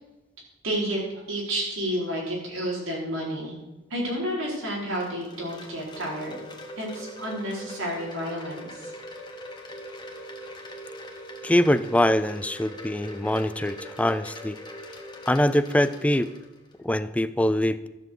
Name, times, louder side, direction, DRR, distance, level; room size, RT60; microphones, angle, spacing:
voice 1, 0.6-1.0 1.3-3.5 3.9-6.4 6.8-8.9, equal, 85° right, -4 dB, 4.7 m, -30 dB
Wind chime, 4.5-16.7, equal, 20° left, 1.7 m, -42 dB
voice 2, 11.4-14.6 15.3-16.3 16.8-17.9, left 1 dB, 5° left, 13 dB, 0.5 m, -23 dB
13.5 x 7.4 x 7.8 m, 1.0 s
head